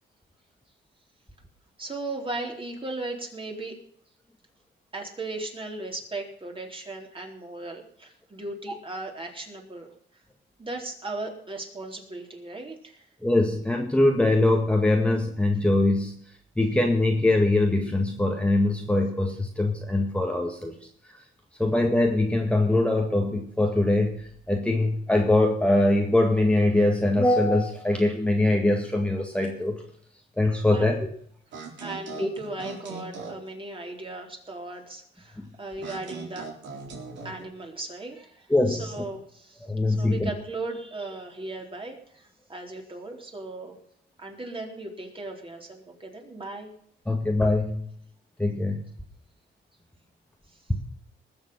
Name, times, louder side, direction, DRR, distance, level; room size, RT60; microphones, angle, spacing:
voice 1, 1.8-3.8 4.9-9.9 10.6-13.0 30.7-30.9 31.8-36.5 37.2-43.8 44.2-46.7, right 2 dB, 25° right, 1 dB, 4.1 m, -37 dB
voice 2, 13.2-16.1 16.6-20.7 21.1-21.2 21.6-29.8 30.4-31.1 32.2-32.3 35.4-35.5 38.5-38.9 39.6-40.3 47.1-47.8 48.4-48.8 50.7-50.8, left 2 dB, 5° left, 2 dB, 1.9 m, -23 dB
sound 1, 31.5-33.5 35.8-37.4, right 3 dB, 65° right, 3.9 m, -40 dB
20.0 x 7.3 x 5.7 m, 0.63 s
cardioid pair, 90°, 20 cm